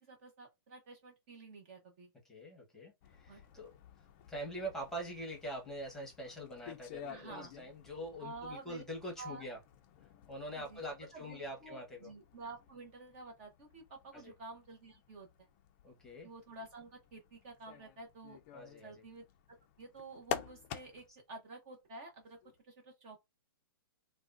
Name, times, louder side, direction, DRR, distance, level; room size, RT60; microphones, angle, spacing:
voice 1, 0.0-2.1 3.3-3.4 7.1-7.5 8.2-8.8 9.2-9.4 10.5-10.8 11.1-15.5 16.2-18.4 18.8-19.3 19.8-22.4 22.7-23.3, right 3 dB, 35° right, 0.7 m, -50 dB
voice 2, 2.2-3.7 4.3-9.6 10.3-12.1 14.1-14.3 15.8-16.3 18.5-19.0, equal, 5° left, 1.0 m, -44 dB
sound 1, 3.0-21.2 22.2-22.6, left 9 dB, 30° left, 0.4 m, -50 dB
3.4 x 2.1 x 2.5 m
hypercardioid pair, 155°, 12 cm